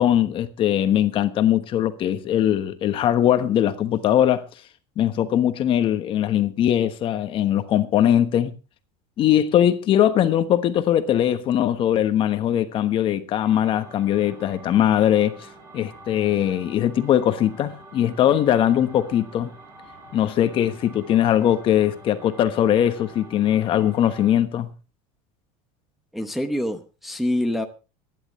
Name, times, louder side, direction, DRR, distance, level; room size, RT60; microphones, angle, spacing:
voice 1, 0.0-4.5 5.0-8.5 9.2-15.5 15.7-19.5 20.1-24.7, left 11 dB, 30° left, 1.2 m, -20 dB
sound 1, 13.4-24.4, right 2 dB, 20° right, 6.0 m, -46 dB
voice 2, 26.1-27.7, left 1 dB, ahead, 0.9 m, -26 dB
26.5 x 11.0 x 3.1 m
cardioid pair, 170°, 17 cm